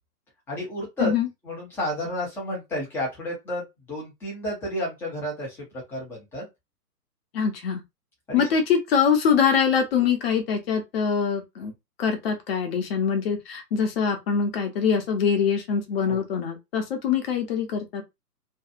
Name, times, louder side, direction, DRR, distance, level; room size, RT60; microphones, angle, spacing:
voice 1, 0.5-1.1 1.4-6.5 8.3-8.5 16.1-16.2, equal, 5° left, 0.6 m, -31 dB
voice 2, 7.3-7.8 8.3-11.7 12.0-18.0, left 6 dB, 40° left, 0.8 m, -24 dB
2.7 x 2.3 x 2.4 m
figure-of-eight pair, 125°, 47 cm